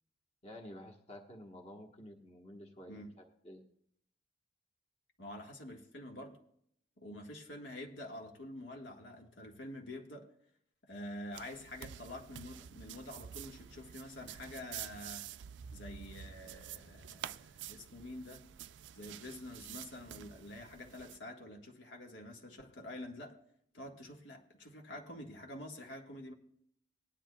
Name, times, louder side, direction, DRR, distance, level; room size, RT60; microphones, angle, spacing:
voice 1, 0.4-3.6, left 1 dB, 35° left, 2 dB, 1.3 m, -51 dB
voice 2, 5.2-6.4 7.0-10.3 10.9-15.3 15.7-18.4 18.9-23.4 23.7-26.3, left 1 dB, 85° left, 1 dB, 1.6 m, -47 dB
sound 1, 11.3-21.2, right 10 dB, 75° right, 0.4 m, -49 dB
19.0 x 10.0 x 2.3 m, 0.69 s
head